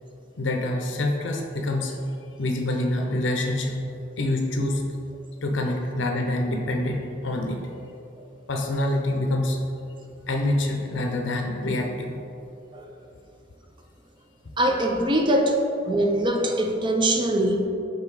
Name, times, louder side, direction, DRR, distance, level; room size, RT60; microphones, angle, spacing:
voice 1, 0.4-1.9 2.4-3.7 4.2-4.8 5.4-7.6 8.5-9.6 10.3-12.2, left 1 dB, 70° left, 2 dB, 0.6 m, -26 dB
voice 2, 14.6-15.6 15.9-17.7, right 1 dB, 25° right, 3 dB, 0.5 m, -22 dB
5.4 x 4.2 x 4.8 m, 2.7 s
head